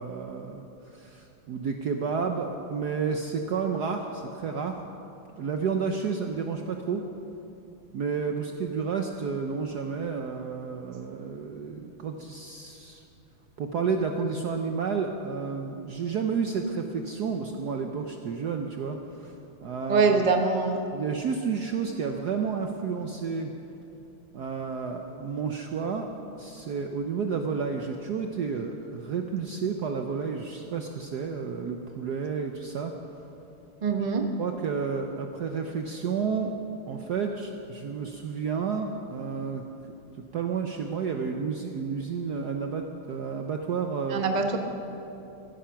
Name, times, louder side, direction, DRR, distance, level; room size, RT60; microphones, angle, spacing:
voice 1, 0.0-4.9 5.3-7.0 7.9-13.0 13.6-19.3 19.6-20.2 20.9-23.5 24.3-32.9 34.0-34.1 34.4-36.5 36.9-39.6 40.3-44.3, right 5 dB, 60° right, 4 dB, 1.1 m, -31 dB
voice 2, 19.9-20.7 33.8-34.3 44.1-44.6, right 4 dB, 30° right, 4 dB, 0.9 m, -23 dB
15.5 x 15.0 x 5.8 m, 2.9 s
omnidirectional pair, 2.4 m